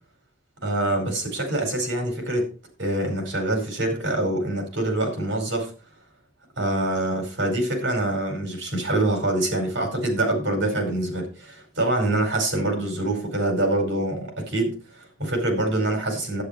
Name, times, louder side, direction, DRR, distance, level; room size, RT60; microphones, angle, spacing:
voice 1, 0.6-2.5 2.8-5.7 6.6-16.4, right 1 dB, 70° right, 4 dB, 5.0 m, -25 dB
11.5 x 9.7 x 4.5 m, 0.36 s
head